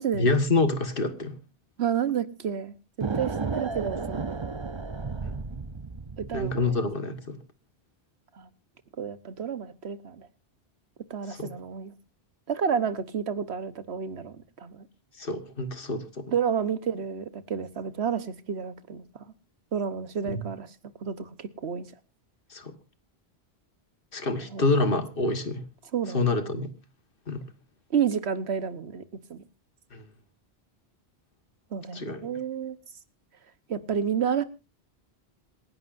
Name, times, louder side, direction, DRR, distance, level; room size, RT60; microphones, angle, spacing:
voice 1, 0.1-1.4 6.3-7.4 11.3-11.5 15.2-16.3 20.2-20.4 22.5-22.7 24.1-25.6 26.1-26.7 27.3-27.5 29.9-30.1 31.9-32.4, left 2 dB, 60° left, 1.7 m, -27 dB
voice 2, 1.8-2.7 3.1-4.3 6.2-6.8 8.3-8.5 9.0-10.3 11.1-11.9 12.5-14.9 16.3-19.2 19.7-20.7 21.0-21.9 24.5-24.7 25.9-26.3 27.9-29.0 29.3-29.4 31.7-32.8 33.7-34.4, right 7 dB, 90° right, 1.4 m, -30 dB
sound 1, 3.0-6.7, right 4 dB, 30° right, 0.8 m, -33 dB
27.0 x 11.0 x 2.6 m
omnidirectional pair, 1.1 m